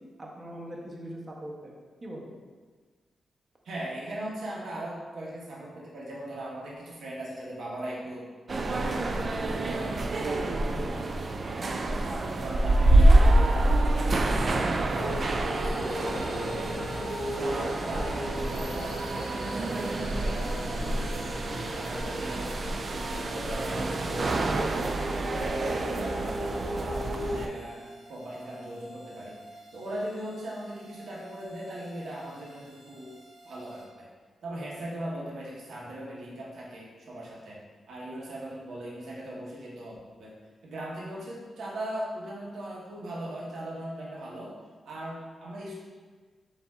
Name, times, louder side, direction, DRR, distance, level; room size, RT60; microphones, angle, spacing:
voice 1, 0.2-1.7 2.0-2.3 10.3-10.7, right 1 dB, 30° right, -2 dB, 0.9 m, -40 dB
voice 2, 3.6-8.2 8.6-11.1 11.6-17.0 17.3-21.4 21.7-22.5 22.9-24.9 25.3-29.4 29.7-33.1 33.4-34.1 34.4-37.6 37.9-40.3 40.6-44.5 44.8-45.7, right 1 dB, 80° right, -5 dB, 1.1 m, -39 dB
sound 1, 8.5-27.5, right 1 dB, 50° right, 0.3 m, -27 dB
sound 2, 15.0-27.5, equal, 85° left, 0.8 m, -37 dB
sound 3, 20.3-33.9, right 2 dB, 15° right, 1.5 m, -50 dB
6.6 x 2.6 x 2.3 m, 1.5 s
cardioid pair, 75°, 0 cm